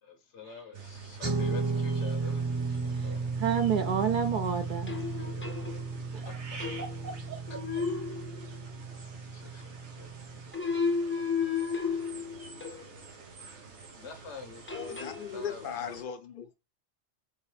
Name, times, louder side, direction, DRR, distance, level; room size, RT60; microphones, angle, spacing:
voice 1, 0.0-3.4 5.2-5.6 6.2-6.8 7.9-8.1 8.9-10.4 13.9-15.0 15.3-15.6, left 4 dB, 90° left, 1.4 m, -47 dB
sound 1, 0.7-16.0, right 4 dB, 80° right, 1.3 m, -47 dB
Guitar, 1.2-10.5, right 4 dB, 25° right, 0.9 m, -34 dB
voice 2, 3.4-5.0 6.1-6.3 6.8-7.4, right 7 dB, 55° right, 0.7 m, -30 dB
sound 2, 4.9-6.1 6.6-7.2 7.5-8.8 10.5-13.0 14.7-15.4, left 5 dB, 15° left, 0.4 m, -33 dB
voice 3, 14.7-16.5, left 7 dB, 55° left, 0.7 m, -38 dB
4.6 x 2.9 x 3.2 m
omnidirectional pair, 1.2 m